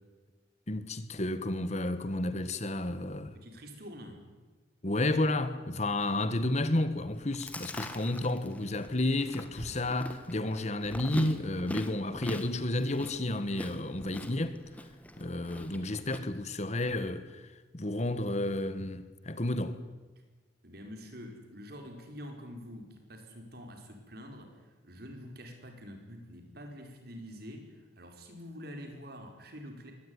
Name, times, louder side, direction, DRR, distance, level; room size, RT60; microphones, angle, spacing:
voice 1, 0.7-3.3 4.8-14.6 15.2-17.4 17.7-19.8, left 1 dB, 35° left, 1.4 m, -31 dB
voice 2, 3.2-4.4 20.6-29.9, equal, 55° right, 4.8 m, -46 dB
Chewing mastication, 7.1-16.2, left 1 dB, 10° left, 1.6 m, -43 dB
22.5 x 18.5 x 9.8 m
head